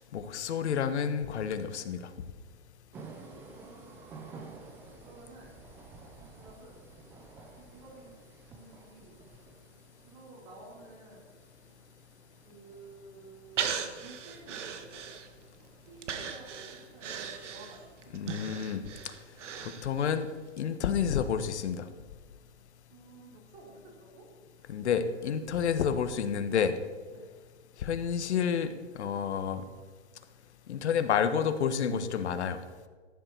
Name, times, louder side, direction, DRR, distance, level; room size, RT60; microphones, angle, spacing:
voice 1, 0.0-2.0 18.1-18.8 19.8-20.3 20.6-21.8 24.7-26.7 27.8-29.6 30.7-32.6, left 7 dB, 60° left, 10 dB, 1.4 m, -29 dB
sound 1, 2.9-19.2, right 4 dB, 5° right, 0.4 m, -53 dB
voice 2, 3.2-4.2 5.0-5.6 6.2-6.8 7.6-8.1 8.5-9.2 10.0-11.4 12.4-15.1 15.6-18.1 22.9-24.3 24.5-25.5 27.1-27.3, right 3 dB, 35° right, -4 dB, 4.9 m, -53 dB
Breathing, 13.6-15.5 16.0-20.2 20.6-20.7, right 7 dB, 70° right, 1.5 m, -38 dB
14.5 x 11.0 x 4.6 m, 1.4 s
hypercardioid pair, 140°, 37 cm